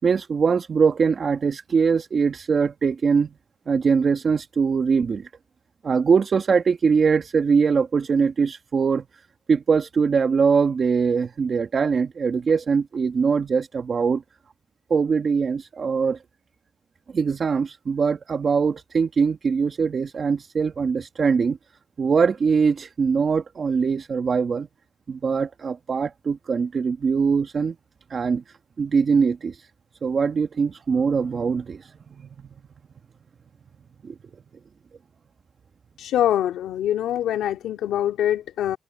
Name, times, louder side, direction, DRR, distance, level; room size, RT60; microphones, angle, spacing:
voice 1, 0.0-3.3 3.7-5.3 5.8-9.0 9.5-14.2 14.9-16.2 17.1-21.6 22.0-24.7 25.1-27.7 28.1-28.4 28.8-29.7 30.0-32.5 34.0-34.1, right 5 dB, 40° right, 1.6 m, -22 dB
voice 2, 36.0-38.8, left 11 dB, 85° left, 2.4 m, -24 dB
cardioid pair, 105°, 0 cm